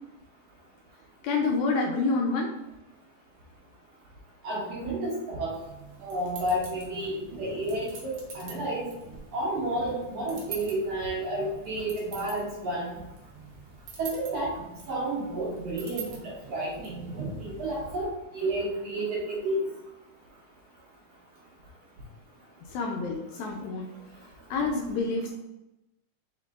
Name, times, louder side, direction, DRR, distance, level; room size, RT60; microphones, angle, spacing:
voice 1, 1.2-2.5 22.7-23.9 24.5-25.3, left 3 dB, 80° left, 1 dB, 1.7 m, -28 dB
voice 2, 4.4-5.6 6.0-8.9 9.3-13.0 14.0-14.5 14.9-18.1 18.3-19.6, right 1 dB, 65° right, -5 dB, 1.9 m, -31 dB
sound 1, 5.5-18.0, right 4 dB, 80° right, 1.2 m, -44 dB
5.0 x 3.7 x 2.3 m, 0.95 s
omnidirectional pair, 3.7 m